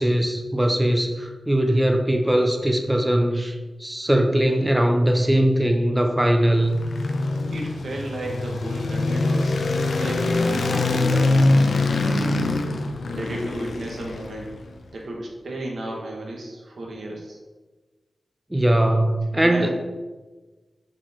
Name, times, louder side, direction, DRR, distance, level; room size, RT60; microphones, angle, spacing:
voice 1, 0.0-3.6 3.8-6.8 18.5-19.7, right 1 dB, 10° right, 5 dB, 0.6 m, -20 dB
sound 1, 6.3-14.7, left 2 dB, 85° left, 0.7 m, -23 dB
voice 2, 7.5-9.6 10.0-12.5 13.1-14.6 14.9-17.4 19.4-19.7, right 1 dB, 80° right, -1 dB, 1.7 m, -34 dB
7.5 x 4.6 x 4.5 m, 1.3 s
wide cardioid pair, 110°, 0 cm